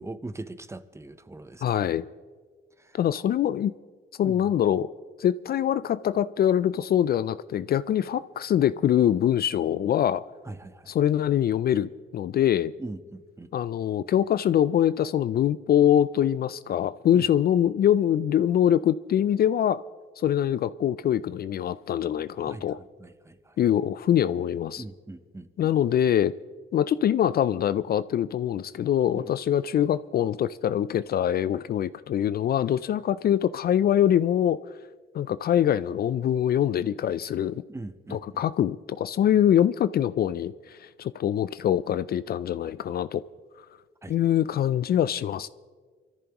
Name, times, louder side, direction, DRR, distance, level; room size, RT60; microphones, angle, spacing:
voice 1, 0.0-1.9 2.8-3.0 4.2-4.4 10.5-10.9 12.8-13.5 17.1-17.3 22.4-22.7 23.0-23.6 24.8-25.7 29.2-29.3 37.7-38.4 44.0-44.1, right 2 dB, 15° right, 12 dB, 0.7 m, -41 dB
voice 2, 1.6-2.0 2.9-3.7 4.2-4.9 5.2-10.2 10.9-12.7 13.5-19.8 20.2-22.8 23.6-24.8 25.6-26.3 26.7-34.6 35.1-37.6 38.1-43.2 44.1-45.5, left 10 dB, 50° left, 15 dB, 0.4 m, -24 dB
24.5 x 14.0 x 3.0 m, 1.5 s
cardioid pair, 90°, 20 cm